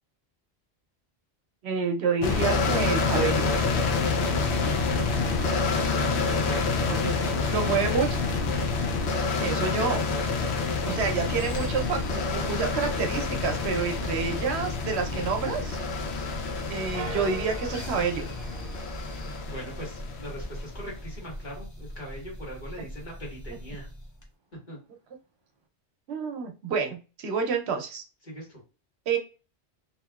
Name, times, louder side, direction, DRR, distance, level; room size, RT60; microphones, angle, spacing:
voice 1, 1.6-3.5 6.9-7.1 7.5-8.2 9.4-10.0 10.9-15.8 16.7-18.2 26.1-28.0 29.1-29.2, right 5 dB, 80° right, 4 dB, 0.9 m, -28 dB
sound 1, 2.2-20.9, left 4 dB, 85° left, 0.9 m, -28 dB
voice 2, 5.9-6.6 19.4-23.9 24.7-24.8 28.2-28.6, equal, 45° left, -4 dB, 1.6 m, -41 dB
sound 2, 10.8-24.3, equal, 20° left, 0.6 m, -40 dB
sound 3, 16.9-19.6, right 2 dB, 40° right, 0.4 m, -41 dB
2.8 x 2.7 x 2.2 m, 0.33 s
omnidirectional pair, 1.1 m